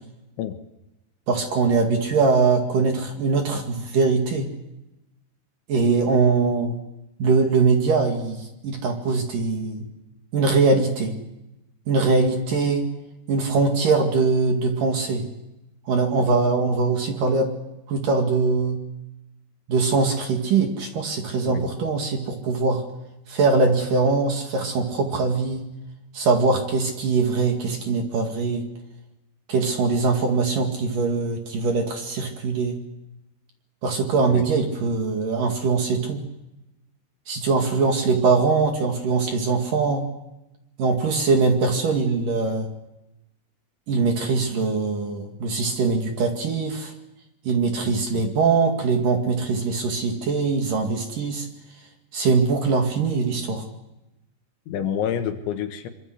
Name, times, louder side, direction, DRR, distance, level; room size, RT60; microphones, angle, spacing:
voice 1, 1.3-4.5 5.7-6.8 7.2-9.8 10.3-11.1 11.9-12.9 13.3-15.2 15.9-17.5 17.9-18.8 19.7-22.8 23.3-25.6 26.1-28.6 29.5-32.8 33.8-36.2 37.3-40.0 40.8-42.7 43.9-46.9 47.4-51.5 52.1-53.6, right 4 dB, 50° right, 3 dB, 3.3 m, -22 dB
voice 2, 47.9-48.2 54.7-55.9, left 9 dB, 70° left, 7 dB, 3.6 m, -28 dB
25.0 x 25.0 x 8.1 m, 0.94 s
omnidirectional pair, 5.7 m